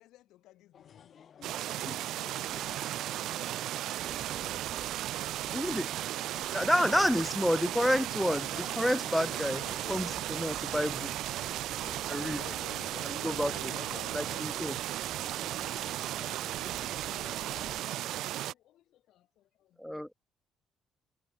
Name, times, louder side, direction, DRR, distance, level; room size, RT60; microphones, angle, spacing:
voice 1, 0.0-3.7 4.3-4.7 5.5-5.8 15.4-17.5 17.8-18.3, left 15 dB, 85° left, 6.7 m, -61 dB
sound 1, 0.7-17.9, left 8 dB, 35° left, 5.8 m, -54 dB
sound 2, 1.4-18.5, right 14 dB, 70° right, 0.4 m, -35 dB
voice 2, 2.0-2.5 4.0-4.5 9.1-10.2 11.2-14.8 18.5-19.8, left 13 dB, 65° left, 4.0 m, -52 dB
sound 3, 2.5-17.8, right 9 dB, 40° right, 1.4 m, -48 dB
voice 3, 5.5-5.9 6.5-9.6 9.9-11.1 12.1-12.4 13.0-13.7 14.1-14.8 19.8-20.1, equal, ahead, 0.3 m, -29 dB
cardioid pair, 175°, 0 cm